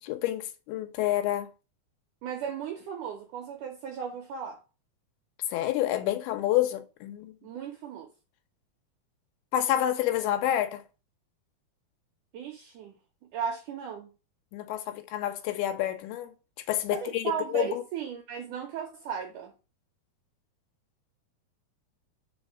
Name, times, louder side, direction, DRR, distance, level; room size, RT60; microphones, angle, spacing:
voice 1, 0.0-1.5 5.5-7.3 9.5-10.8 14.5-17.8, left 12 dB, 80° left, 2.7 m, -29 dB
voice 2, 2.2-4.6 7.4-8.1 12.3-13.0 13.3-14.1 16.9-19.5, right 7 dB, 75° right, 1.9 m, -36 dB
5.1 x 4.3 x 5.8 m
omnidirectional pair, 4.5 m